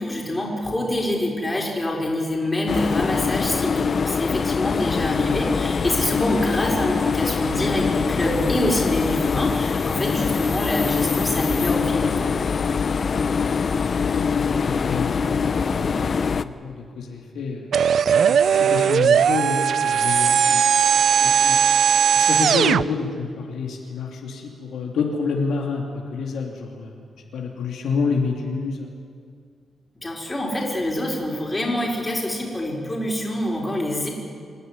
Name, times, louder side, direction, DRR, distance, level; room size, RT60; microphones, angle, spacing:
voice 1, 0.0-12.3 30.0-34.1, left 1 dB, 15° left, -2 dB, 5.2 m, -26 dB
sound 1, 2.7-16.4, left 5 dB, 45° left, 0.6 m, -23 dB
voice 2, 13.1-13.5 14.1-17.7 18.1-20.7 21.2-21.6 22.1-27.0 27.3-28.9, left 5 dB, 85° left, 0 dB, 3.0 m, -29 dB
sound 2, 17.7-22.8, right 8 dB, 70° right, 0.4 m, -18 dB
26.5 x 11.5 x 9.8 m, 2.1 s
cardioid pair, 110°, 0 cm